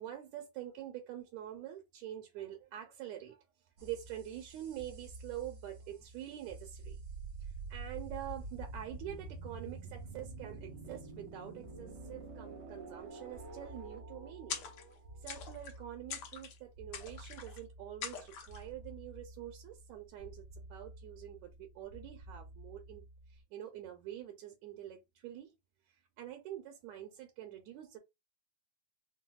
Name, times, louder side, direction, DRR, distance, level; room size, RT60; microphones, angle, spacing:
voice 1, 0.0-3.4 3.8-7.0 7.4-14.6 15.2-23.0 23.3-25.5 26.2-28.0, right 12 dB, 80° right, 1.8 m, -46 dB
sound 1, 3.8-23.4, right 3 dB, 65° right, 1.1 m, -49 dB
sound 2, 14.5-15.0 15.3-15.8 16.1-16.6 16.9-17.6 18.0-18.6, left 7 dB, 80° left, 1.3 m, -43 dB
4.6 x 2.2 x 2.2 m
omnidirectional pair, 3.4 m